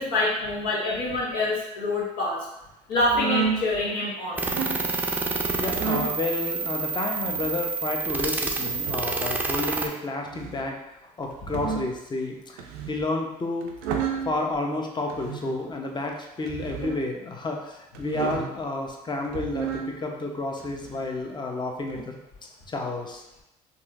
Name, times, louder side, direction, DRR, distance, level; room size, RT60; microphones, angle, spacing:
voice 1, 0.0-2.5 2.9-4.4, left 2 dB, 80° left, -4 dB, 1.1 m, -26 dB
sound 1, 3.0-3.6 4.3-4.8 5.7-6.2 7.1-7.6 8.6-9.1 10.2-10.6 11.3-12.0 12.6-13.0 13.6-14.3 15.1-15.6 16.4-17.0 17.9-18.6 19.2-19.9 20.6-21.1 21.9-22.0, right 6 dB, 80° right, 0.5 m, -31 dB
sound 2, 4.4-9.9, right 4 dB, 10° right, 0.5 m, -28 dB
voice 2, 5.6-10.8 11.2-12.6 12.9-13.7 14.2-22.2 22.7-23.2, left 2 dB, 25° left, 1 dB, 0.7 m, -30 dB
4.1 x 2.6 x 2.4 m, 0.90 s
hypercardioid pair, 65°, 18 cm